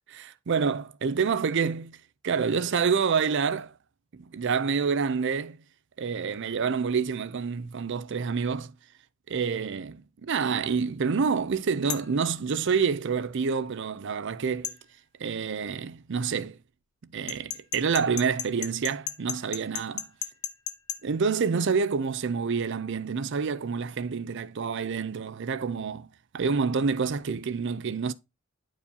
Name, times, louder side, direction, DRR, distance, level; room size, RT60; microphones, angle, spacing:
voice 1, 0.1-2.0 2.2-3.7 4.3-5.6 6.0-8.7 9.3-14.7 15.2-16.6 17.1-20.1 21.0-26.1 26.3-28.1, right 5 dB, 60° right, 0.5 m, -27 dB
sound 1, 11.9-12.1 14.6-14.8 17.3-21.0, left 10 dB, 85° left, 0.7 m, -34 dB
10.0 x 4.7 x 2.7 m
head